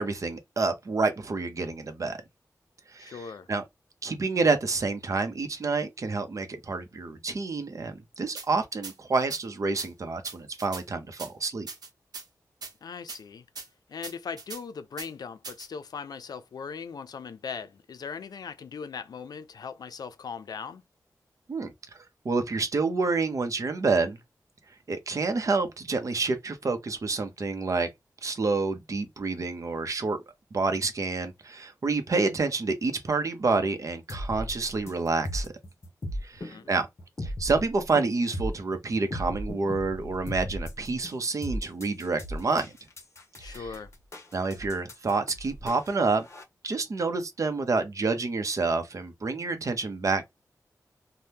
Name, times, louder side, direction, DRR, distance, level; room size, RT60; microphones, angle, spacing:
voice 1, 0.0-2.2 2.9-3.6 4.0-11.7 21.5-21.7 22.2-24.2 24.9-27.9 28.2-30.2 30.5-35.5 36.2-36.9 37.2-42.7 43.4-43.7 44.3-46.3 46.6-50.2, right 3 dB, 55° right, 0.6 m, -28 dB
voice 2, 3.0-3.5 12.8-13.4 13.9-20.8 36.4-36.6 43.4-43.9, left 6 dB, 90° left, 0.4 m, -39 dB
sound 1, 8.4-8.5 8.8-8.9 9.3-9.4 9.8-9.9 10.2-10.8 11.2-11.3 11.7-12.3 12.6-12.7 13.1-13.2 13.6-13.7 14.0-14.6 15.0-15.1 15.4-15.7, right 4 dB, 85° right, 0.8 m, -39 dB
sound 2, 34.1-46.4, equal, 45° left, 0.8 m, -36 dB
2.7 x 2.1 x 3.3 m
wide cardioid pair, 110°, 7 cm